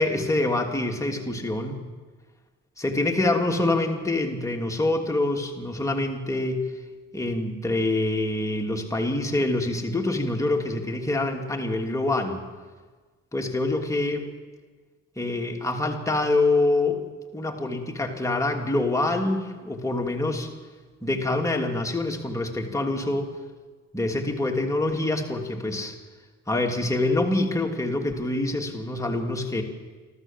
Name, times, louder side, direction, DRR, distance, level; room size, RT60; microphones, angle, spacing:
voice 1, 0.0-1.8 2.8-6.6 7.1-12.4 13.3-14.3 15.2-17.0 17.3-20.5 21.0-23.3 23.9-25.9 26.5-29.6, left 2 dB, 10° left, 2 dB, 2.9 m, -25 dB
28.5 x 13.0 x 7.5 m, 1.4 s
supercardioid pair, 70°, 31 cm